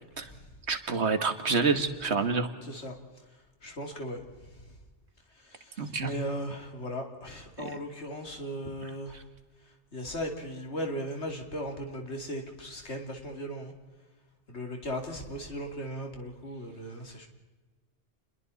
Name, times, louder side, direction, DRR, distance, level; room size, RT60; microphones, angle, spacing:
voice 1, 0.7-2.5 5.8-6.1 7.6-7.7 8.8-8.9, right 4 dB, 70° right, 8 dB, 1.9 m, -28 dB
voice 2, 2.6-3.0 3.6-4.6 5.3-9.2 9.9-13.7 14.5-17.3, equal, 75° left, 3 dB, 3.2 m, -37 dB
29.0 x 22.0 x 4.2 m, 1.3 s
omnidirectional pair, 1.2 m